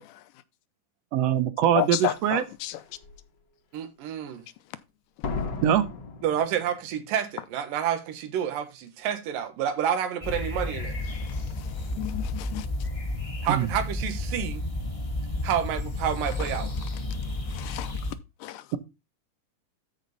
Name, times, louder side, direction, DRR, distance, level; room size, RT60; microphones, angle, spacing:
voice 1, 1.1-2.4 5.6-5.9 13.5-13.7, right 10 dB, 65° right, 1.7 m, -23 dB
voice 2, 1.8-2.7 12.0-12.7 17.6-17.9 18.4-18.6, left 15 dB, 80° left, 2.2 m, -30 dB
Slam, 2.1-2.2 2.8-3.2 5.2-7.1 7.4-7.5, left 4 dB, 55° left, 1.2 m, -35 dB
voice 3, 3.7-4.4 6.2-11.0 13.4-14.6 15.4-16.7, right 9 dB, 85° right, 2.9 m, -29 dB
sound 1, 10.2-18.1, left 2 dB, 25° left, 0.7 m, -32 dB
13.5 x 5.0 x 4.0 m
omnidirectional pair, 3.8 m